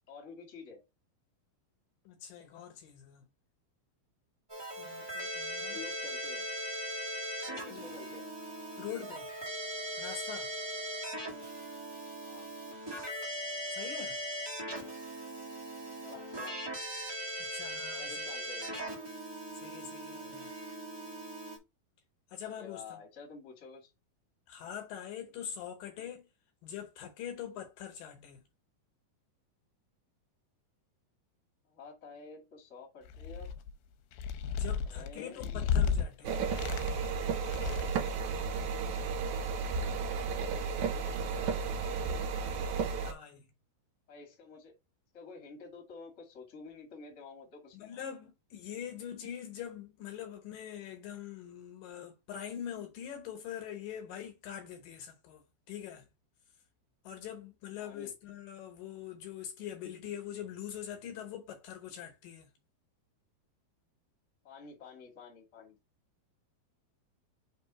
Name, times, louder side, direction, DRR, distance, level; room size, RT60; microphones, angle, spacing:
voice 1, 0.1-0.8 5.5-6.5 7.4-8.3 12.2-12.5 16.0-16.6 17.9-18.8 22.5-23.9 24.6-24.7 31.6-33.5 34.8-35.7 41.1-42.2 44.1-44.7 45.1-48.0 57.8-58.1 64.4-65.8, left 4 dB, 30° left, 1.3 m, -50 dB
voice 2, 2.1-3.3 4.7-5.8 7.7-7.8 8.8-9.3 10.0-10.5 13.7-14.2 17.4-18.3 19.6-20.5 22.3-23.0 24.5-26.3 26.6-28.4 34.5-36.4 42.9-43.5 47.7-56.1 57.0-62.5, left 9 dB, 70° left, 2.4 m, -44 dB
Keyboard (musical), 4.5-21.6, right 1 dB, 35° right, 0.4 m, -39 dB
sound 1, 33.1-33.7 34.1-36.0 36.5-37.1 37.4-38.1, left 6 dB, 85° left, 2.5 m, -33 dB
sound 2, 36.2-43.1, right 5 dB, 70° right, 1.8 m, -33 dB
5.4 x 3.7 x 4.8 m
omnidirectional pair, 4.4 m